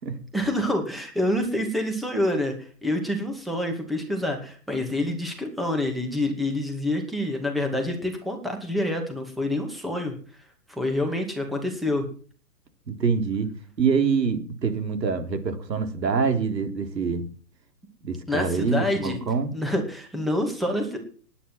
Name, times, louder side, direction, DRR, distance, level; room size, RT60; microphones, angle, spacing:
voice 1, 0.3-12.1 18.3-19.2 19.5-21.0, left 1 dB, ahead, 3 dB, 2.3 m, -27 dB
voice 2, 12.9-13.5 13.8-17.3 18.0-19.5, right 5 dB, 85° right, 7 dB, 3.8 m, -25 dB
19.0 x 10.0 x 6.2 m, 0.43 s
hypercardioid pair, 155°, 49 cm